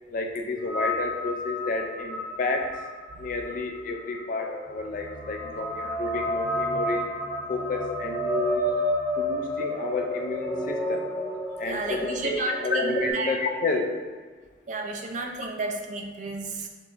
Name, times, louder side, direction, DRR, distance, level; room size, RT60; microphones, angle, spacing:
voice 1, 0.1-2.8 3.2-7.1 7.5-8.7 9.2-11.1 11.6-13.9, left 3 dB, 45° left, 3 dB, 0.3 m, -30 dB
sound 1, 0.6-13.1, equal, 5° left, 1.1 m, -31 dB
voice 2, 5.4-6.0 11.6-13.3 14.7-16.7, right 2 dB, 40° right, 2 dB, 0.4 m, -32 dB
5.8 x 2.8 x 2.5 m, 1.4 s
head